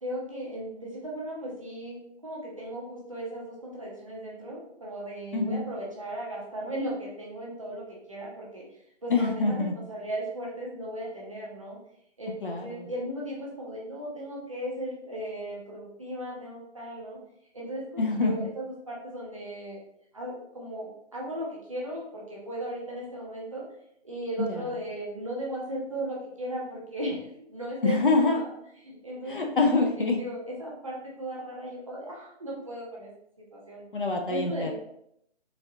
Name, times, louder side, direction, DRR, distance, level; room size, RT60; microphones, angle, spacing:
voice 1, 0.0-11.8 12.2-17.2 17.5-19.8 20.1-23.6 24.0-28.5 28.8-29.4 29.7-33.1 33.5-33.9 34.3-34.7, right 1 dB, 30° right, -4 dB, 0.7 m, -36 dB
voice 2, 5.3-5.6 9.1-9.7 12.4-12.9 18.0-18.3 24.4-24.6 27.8-28.4 29.3-30.2 33.9-34.7, left 3 dB, 50° left, 2 dB, 0.5 m, -25 dB
4.0 x 2.4 x 2.7 m, 0.74 s
hypercardioid pair, 175°, 34 cm